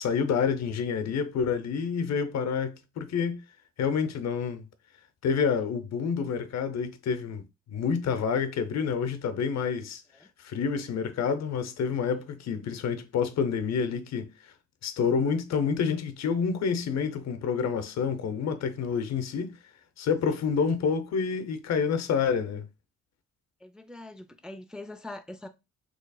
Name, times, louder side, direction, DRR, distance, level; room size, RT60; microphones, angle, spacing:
voice 1, 0.0-3.4 3.8-4.7 5.2-7.4 7.7-10.0 10.4-14.3 14.8-19.5 20.0-22.7, left 6 dB, 60° left, 0.8 m, -28 dB
voice 2, 23.6-25.5, left 2 dB, 5° right, 0.4 m, -43 dB
4.0 x 3.1 x 2.3 m
cardioid pair, 90°, 30 cm